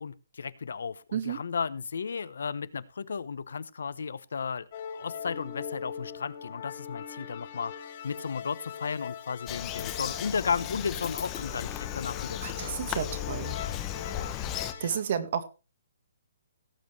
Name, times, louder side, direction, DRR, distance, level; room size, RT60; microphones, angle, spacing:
voice 1, 0.0-4.7 4.9-12.8 14.8-15.0, left 6 dB, 75° left, 17 dB, 0.9 m, -34 dB
sound 1, 4.7-14.9, left 8 dB, 40° left, 2.1 m, -41 dB
Bird vocalization bird call bird song, 9.5-14.7, left 11 dB, 15° left, 0.9 m, -36 dB
voice 2, 12.4-13.5 14.8-15.4, right 8 dB, 45° right, 10 dB, 1.6 m, -31 dB
18.0 x 7.5 x 3.2 m, 0.31 s
hypercardioid pair, 165°, 0 cm